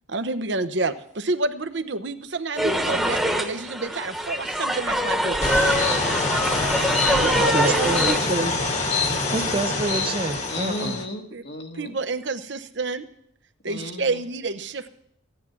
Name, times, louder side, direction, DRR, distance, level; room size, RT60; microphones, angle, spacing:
voice 1, 0.1-5.4 7.0-8.5 11.3-11.4 11.7-13.0 13.6-14.9, right 3 dB, 60° right, 10 dB, 0.8 m, -29 dB
sound 1, 2.6-8.2, equal, ahead, 1.2 m, -24 dB
sound 2, 5.4-11.1, left 3 dB, 35° left, 1.4 m, -25 dB
voice 2, 7.5-8.5 9.3-11.0, right 2 dB, 25° right, 9 dB, 0.6 m, -27 dB
voice 3, 8.8-9.3 10.5-12.0 13.6-14.2, left 1 dB, 55° left, 3 dB, 1.6 m, -35 dB
15.5 x 9.8 x 6.0 m, 0.71 s
head